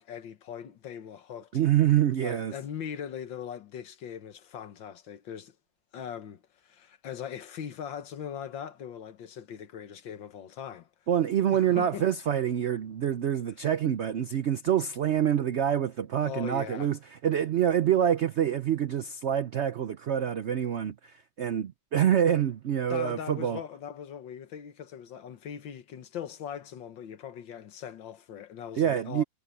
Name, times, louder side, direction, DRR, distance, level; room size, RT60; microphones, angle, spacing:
voice 1, 0.0-1.5 2.2-5.6 5.9-10.9 11.5-12.1 16.2-16.9 22.9-29.2, left 8 dB, 85° left, 1.9 m, -40 dB
voice 2, 1.5-2.5 11.1-23.6 28.8-29.2, right 10 dB, 75° right, 0.6 m, -26 dB
omnidirectional pair, 2.0 m